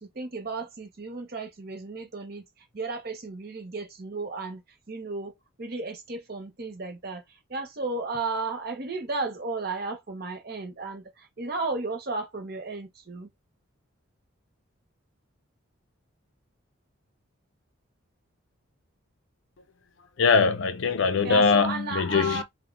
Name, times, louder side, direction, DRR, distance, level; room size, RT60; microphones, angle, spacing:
voice 1, 0.0-2.4 2.7-4.6 4.9-5.3 5.6-7.2 7.5-13.3 21.2-22.4, right 3 dB, 45° right, 0.7 m, -34 dB
voice 2, 20.2-22.4, left 5 dB, 60° left, 0.4 m, -22 dB
3.4 x 2.1 x 2.4 m
head